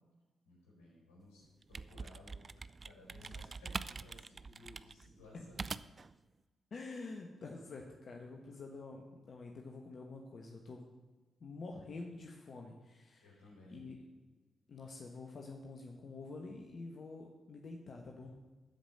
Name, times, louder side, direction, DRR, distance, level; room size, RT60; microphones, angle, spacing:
voice 1, 0.4-2.4 2.8-5.6 13.2-14.0, left 2 dB, 90° left, -5 dB, 4.6 m, -58 dB
sound 1, 1.4-6.1, right 4 dB, 45° right, 0.4 m, -44 dB
voice 2, 6.7-10.8 11.4-13.3 13.7-14.0 14.7-18.4, left 3 dB, 60° left, 1 dB, 1.2 m, -47 dB
13.0 x 5.2 x 7.6 m, 1.2 s
hypercardioid pair, 45°, 0 cm